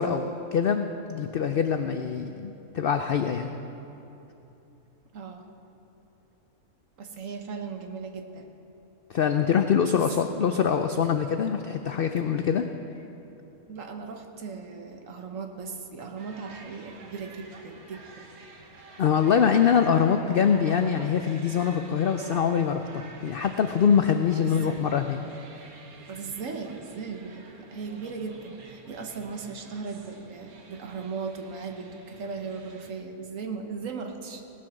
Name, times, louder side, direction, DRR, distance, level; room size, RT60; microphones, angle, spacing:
voice 1, 0.0-3.5 9.1-12.7 19.0-25.2, left 7 dB, 75° left, 7 dB, 0.5 m, -24 dB
voice 2, 5.1-5.4 7.0-8.5 9.9-10.1 13.7-18.3 24.4-24.8 26.1-34.6, right 5 dB, 65° right, 5 dB, 1.3 m, -37 dB
sound 1, 16.2-32.9, right 3 dB, 85° right, 1.7 m, -49 dB
17.5 x 7.6 x 6.2 m, 3.0 s
omnidirectional pair, 1.5 m